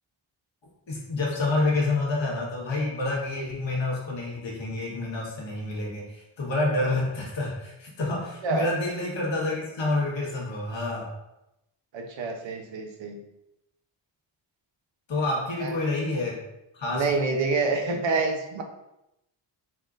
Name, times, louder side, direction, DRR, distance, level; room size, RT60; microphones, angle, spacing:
voice 1, 0.9-11.1 15.1-16.4 16.7-17.1, left 2 dB, 65° left, -3 dB, 1.4 m, -28 dB
voice 2, 11.9-13.2 15.6-15.8 16.9-18.6, right 3 dB, 65° right, 3 dB, 0.7 m, -27 dB
4.3 x 3.7 x 2.5 m, 0.88 s
wide cardioid pair, 130°, 49 cm